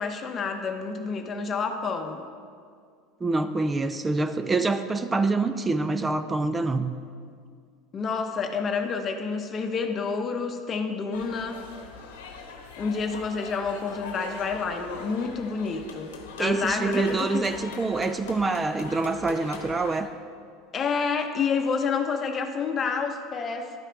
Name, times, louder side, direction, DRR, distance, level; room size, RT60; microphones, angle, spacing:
voice 1, 0.0-2.2 7.9-11.6 12.8-17.5 20.7-23.7, left 5 dB, 35° left, 5 dB, 0.8 m, -29 dB
voice 2, 3.2-6.9 16.4-20.1, right 3 dB, 20° right, 10 dB, 0.4 m, -26 dB
sound 1, 11.1-20.0, left 5 dB, 85° left, 1.0 m, -41 dB
11.5 x 4.9 x 4.6 m, 2.1 s
hypercardioid pair, 95°, 0 cm